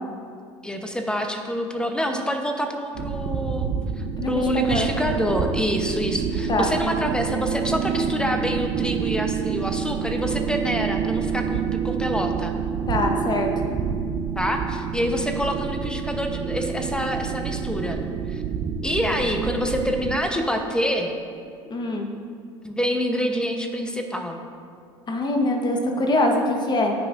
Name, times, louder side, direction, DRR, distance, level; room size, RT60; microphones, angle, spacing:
voice 1, 0.6-12.5 14.4-18.0 18.3-18.4 18.8-21.1 22.6-24.4, equal, 5° left, 4 dB, 1.0 m, -26 dB
sound 1, 2.9-20.2, right 7 dB, 45° right, 0.6 m, -28 dB
voice 2, 4.2-4.9 6.5-6.7 12.9-13.7 21.7-22.1 25.1-26.9, left 2 dB, 30° left, 2 dB, 1.3 m, -23 dB
14.5 x 5.5 x 2.6 m, 2.2 s
hypercardioid pair, 75°, 15 cm